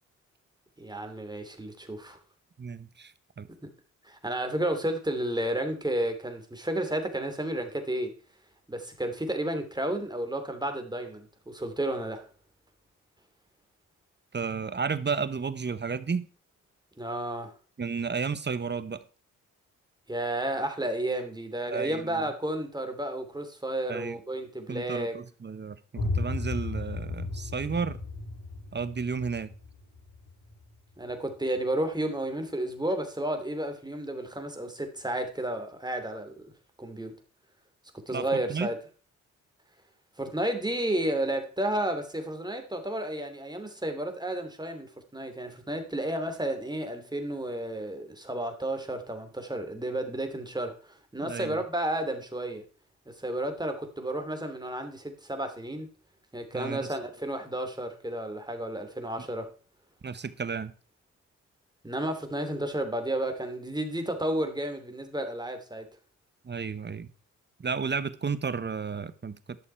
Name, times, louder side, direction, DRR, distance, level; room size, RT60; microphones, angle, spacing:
voice 1, 0.8-2.2 4.0-8.1 8.7-12.3 17.0-17.5 20.1-25.2 31.0-36.5 36.8-37.1 38.1-38.8 40.2-50.8 51.1-52.6 53.1-55.9 56.3-59.5 61.8-65.9, right 1 dB, 10° right, 6 dB, 2.8 m, -32 dB
voice 2, 2.6-3.5 14.3-16.3 17.8-19.0 21.7-22.2 23.9-24.2 24.7-28.0 28.7-29.5 38.1-38.7 51.2-51.6 56.5-56.9 60.0-60.7 66.4-67.1 67.6-69.6, right 5 dB, 30° right, 14 dB, 1.1 m, -32 dB
sound 1, 26.0-31.5, left 2 dB, 80° left, 5.9 m, -35 dB
12.0 x 6.5 x 4.5 m, 0.38 s
supercardioid pair, 50°, 34 cm